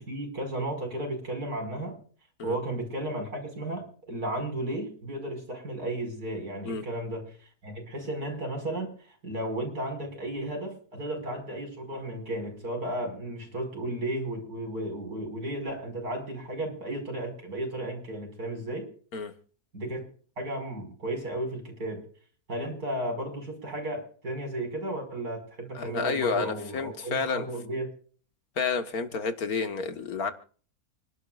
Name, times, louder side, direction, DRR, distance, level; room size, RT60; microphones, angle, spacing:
voice 1, 0.0-2.0 2.4-7.2 7.6-18.9 19.7-20.1 20.4-22.0 22.5-27.9, right 1 dB, 75° right, 3 dB, 5.9 m, -34 dB
voice 2, 25.8-27.5 28.6-30.3, left 4 dB, 70° left, 8 dB, 1.9 m, -30 dB
29.5 x 12.0 x 2.4 m, 0.43 s
omnidirectional pair, 1.6 m